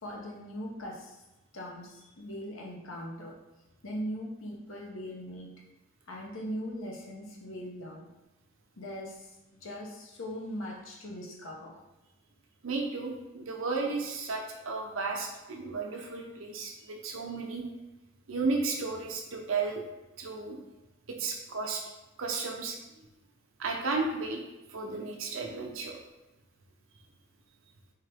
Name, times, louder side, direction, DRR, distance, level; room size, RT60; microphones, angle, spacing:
voice 1, 0.0-1.2 1.5-3.4 3.8-5.5 6.1-8.1 8.8-9.4 9.6-11.8, equal, 75° left, -1 dB, 0.9 m, -40 dB
voice 2, 12.6-17.6 18.3-19.8 20.2-20.6 21.1-21.8 22.2-22.8 23.6-24.4 24.7-26.0, right 4 dB, 80° right, 1 dB, 0.7 m, -33 dB
3.7 x 2.8 x 3.4 m, 1.0 s
head